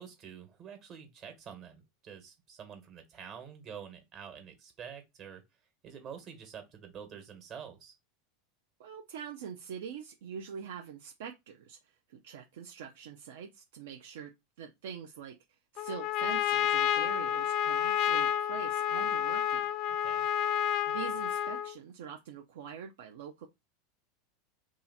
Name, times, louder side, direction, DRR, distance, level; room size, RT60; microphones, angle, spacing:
voice 1, 0.0-5.4 5.8-7.9 20.0-20.3, right 7 dB, 45° right, 1.2 m, -47 dB
voice 2, 8.8-14.3 14.6-15.3 15.7-19.7 20.9-23.5, right 7 dB, 75° right, 0.4 m, -44 dB
Trumpet, 15.8-21.8, left 10 dB, 50° left, 0.3 m, -30 dB
2.7 x 2.4 x 3.9 m
hypercardioid pair, 100°, 0 cm